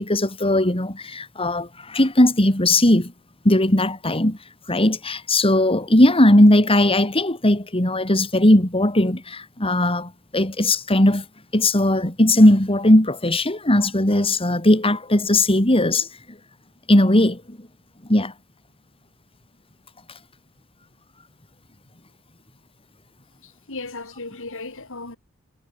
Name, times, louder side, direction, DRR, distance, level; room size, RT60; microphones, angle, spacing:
voice 1, 0.0-3.1 3.4-4.4 4.7-11.2 11.5-16.1 16.9-17.6 18.1-18.3, left 1 dB, 25° left, 3.4 m, -18 dB
voice 2, 23.4-25.2, left 3 dB, 60° left, 5.5 m, -36 dB
head